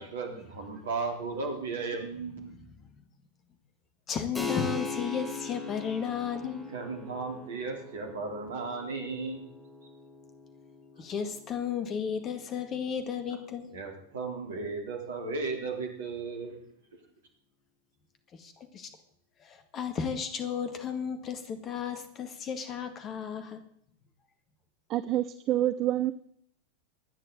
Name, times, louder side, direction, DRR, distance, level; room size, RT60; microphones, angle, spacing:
voice 1, 0.0-2.5 6.7-9.4 13.7-16.6, right 4 dB, 60° right, 3 dB, 3.6 m, -35 dB
voice 2, 2.5-3.0 4.1-6.7 11.0-13.7 18.4-18.9 19.4-23.6, left 7 dB, 30° left, 8 dB, 2.0 m, -34 dB
Keyboard (musical), 4.3-14.6, left 4 dB, 10° left, 2.4 m, -42 dB
voice 3, 24.9-26.1, right 13 dB, 35° right, 14 dB, 0.6 m, -27 dB
24.5 x 9.8 x 3.9 m, 0.69 s
figure-of-eight pair, 90°, 0 cm